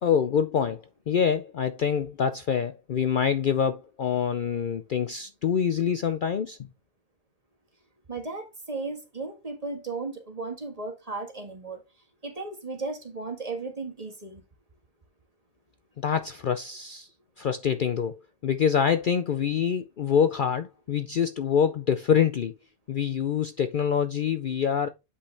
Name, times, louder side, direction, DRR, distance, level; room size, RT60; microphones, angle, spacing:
voice 1, 0.0-6.6 16.0-17.1 17.4-22.5 22.9-24.9, left 7 dB, 75° left, 0.4 m, -25 dB
voice 2, 8.1-11.8 12.2-14.4, right 3 dB, 25° right, 1.6 m, -35 dB
8.1 x 5.6 x 3.3 m
omnidirectional pair, 1.5 m